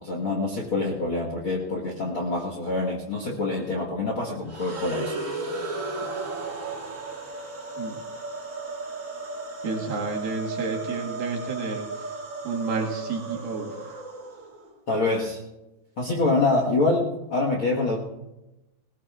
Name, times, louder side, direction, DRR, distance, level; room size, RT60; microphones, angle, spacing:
voice 1, 0.0-5.2 14.9-15.4 16.0-18.0, left 2 dB, 50° left, -1 dB, 1.6 m, -25 dB
sound 1, 4.5-14.7, right 3 dB, 50° right, 0.9 m, -34 dB
voice 2, 9.6-12.1 12.4-14.0, right 4 dB, 70° right, -1 dB, 3.6 m, -31 dB
20.0 x 19.0 x 2.5 m, 0.98 s
omnidirectional pair, 4.5 m